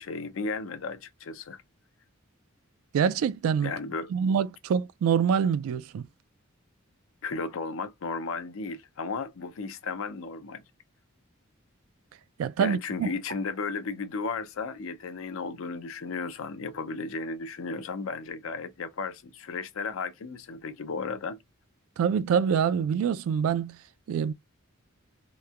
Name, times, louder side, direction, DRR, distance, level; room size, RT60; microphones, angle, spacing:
voice 1, 0.0-1.6 3.6-4.1 7.2-10.6 12.6-21.4, left 4 dB, 70° left, 0.5 m, -34 dB
voice 2, 2.9-3.7 4.1-6.1 12.4-13.1 22.0-23.8 24.1-24.3, right 7 dB, 80° right, 0.3 m, -25 dB
3.0 x 2.1 x 2.3 m
head